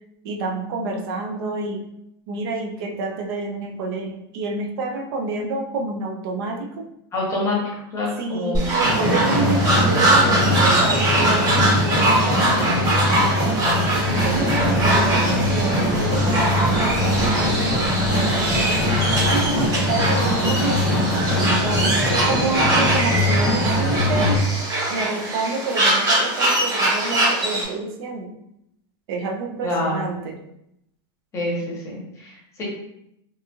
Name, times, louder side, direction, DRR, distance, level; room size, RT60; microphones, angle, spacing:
voice 1, 0.2-1.8 2.3-6.8 8.2-13.6 14.0-17.9 18.5-21.0 21.6-24.4 24.9-28.3 29.1-30.4, right 3 dB, 65° right, 1 dB, 0.5 m, -28 dB
voice 2, 7.1-7.6 7.9-8.7 22.5-22.8 23.9-24.0 29.6-30.0 31.3-32.6, left 1 dB, 20° left, -3 dB, 0.9 m, -26 dB
sound 1, 8.5-27.6, right 1 dB, 30° right, 1.0 m, -22 dB
sound 2, 8.8-24.4, left 1 dB, 5° right, 1.0 m, -21 dB
sound 3, 14.0-19.7, left 1 dB, 40° left, 0.3 m, -36 dB
2.6 x 2.3 x 2.8 m, 0.78 s
supercardioid pair, 150°, 13 cm